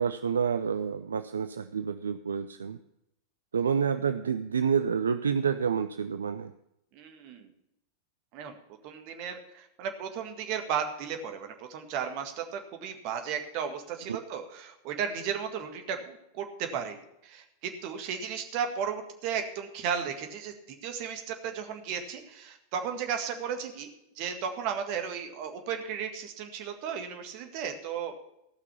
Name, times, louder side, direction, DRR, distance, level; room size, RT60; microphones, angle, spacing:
voice 1, 0.0-2.8 3.5-6.5 14.1-14.2, right 6 dB, 70° right, 10 dB, 0.5 m, -28 dB
voice 2, 6.9-7.5 8.3-8.6 8.8-17.0 17.2-20.5 20.8-23.9 24.2-28.1, right 7 dB, 45° right, 5 dB, 1.9 m, -34 dB
15.5 x 6.0 x 7.0 m, 0.84 s
figure-of-eight pair, 90°, 0 cm